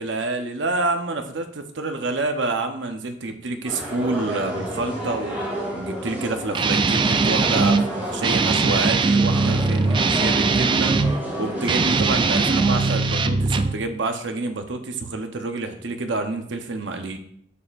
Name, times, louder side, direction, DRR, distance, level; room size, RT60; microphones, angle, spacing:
voice 1, 0.0-5.4 5.7-17.2, right 2 dB, 75° right, 6 dB, 0.8 m, -28 dB
sound 1, 3.6-12.9, equal, 10° right, 2.6 m, -31 dB
Guitar, 6.5-7.8 8.2-11.2 11.6-13.8, right 4 dB, 25° right, 0.3 m, -20 dB
6.9 x 6.6 x 2.5 m, 0.68 s
head